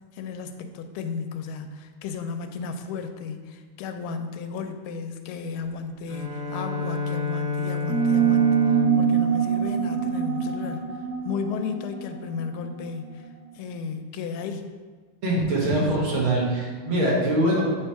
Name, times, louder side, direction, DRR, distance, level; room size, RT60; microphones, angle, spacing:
voice 1, 0.1-10.8 11.2-13.3 13.5-14.6 15.6-15.8, left 5 dB, 85° left, 7 dB, 1.5 m, -34 dB
Bowed string instrument, 6.1-10.7, left 4 dB, 40° right, 1.7 m, -30 dB
sound 1, 7.9-13.1, right 9 dB, 15° right, 0.5 m, -24 dB
voice 2, 15.2-17.7, right 1 dB, 75° right, -4 dB, 2.4 m, -23 dB
8.0 x 3.1 x 4.6 m, 1.4 s
omnidirectional pair, 2.3 m